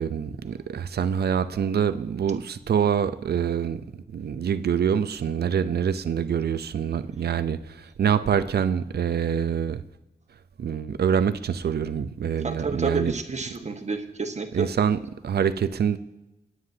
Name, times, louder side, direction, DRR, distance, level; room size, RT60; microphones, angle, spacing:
voice 1, 0.0-3.8 4.1-9.8 10.6-13.1 14.5-15.0 15.2-16.0, right 8 dB, 85° right, 0.7 m, -25 dB
voice 2, 12.4-14.7, right 4 dB, 45° right, 1.5 m, -29 dB
24.5 x 9.5 x 2.8 m
cardioid pair, 65°, 16 cm